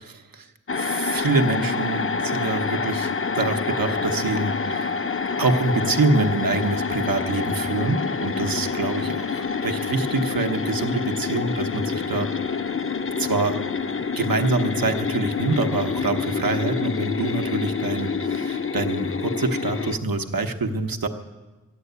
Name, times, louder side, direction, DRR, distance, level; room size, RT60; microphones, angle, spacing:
voice 1, 0.0-3.1 3.4-5.0 5.4-12.7 13.2-13.6 13.9-21.1, right 3 dB, 85° right, 6 dB, 1.1 m, -25 dB
sound 1, 0.7-20.0, left 5 dB, 40° left, 0.6 m, -27 dB
14.0 x 10.0 x 8.1 m, 1.3 s
wide cardioid pair, 55°, 34 cm